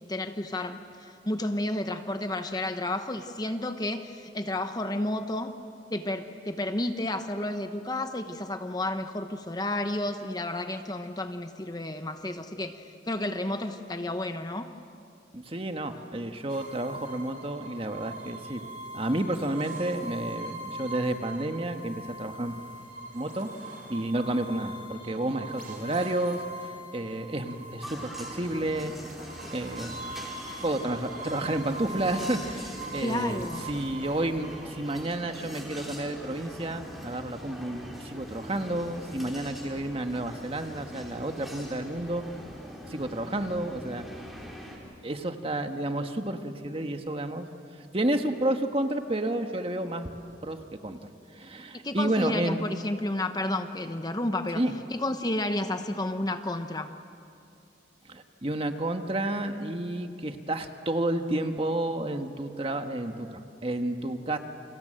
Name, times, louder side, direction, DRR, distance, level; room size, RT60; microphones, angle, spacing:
voice 1, 0.1-5.5 5.9-14.7 33.0-33.7 51.8-54.6 54.9-56.9, left 1 dB, 20° left, 8 dB, 0.9 m, -31 dB
voice 2, 15.3-18.6 18.9-22.6 23.1-23.5 23.9-28.9 29.5-30.0 30.6-42.2 42.9-44.0 45.0-47.5 47.9-50.1 50.4-50.6 50.8-51.0 51.3-52.6 54.5-54.7 58.0-64.4, right 1 dB, 30° right, 6 dB, 1.4 m, -31 dB
sound 1, 16.5-35.0, right 2 dB, 50° right, 4.3 m, -42 dB
sound 2, 27.8-44.8, equal, ahead, 4.8 m, -43 dB
29.5 x 25.5 x 7.7 m, 2.6 s
head